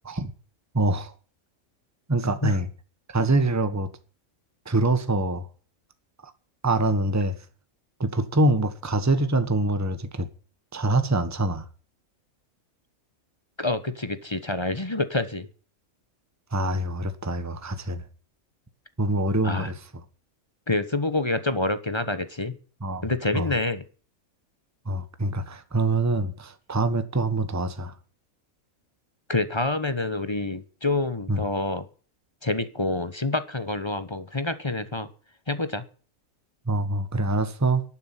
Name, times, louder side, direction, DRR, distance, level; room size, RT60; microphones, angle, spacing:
voice 1, 0.7-1.1 2.1-2.7 3.1-3.9 4.6-5.5 6.2-6.3 6.6-7.3 8.0-10.3 10.7-11.6 16.5-18.0 19.0-19.8 22.8-23.0 23.3-23.5 24.8-27.9 31.3-31.4 36.7-37.8, right 2 dB, 10° right, 1.2 m, -25 dB
voice 2, 13.6-15.5 19.4-19.7 20.7-22.6 23.0-23.8 29.3-31.9 32.4-35.1 35.5-35.8, left 2 dB, 20° left, 1.1 m, -27 dB
11.5 x 10.0 x 9.2 m
omnidirectional pair, 1.5 m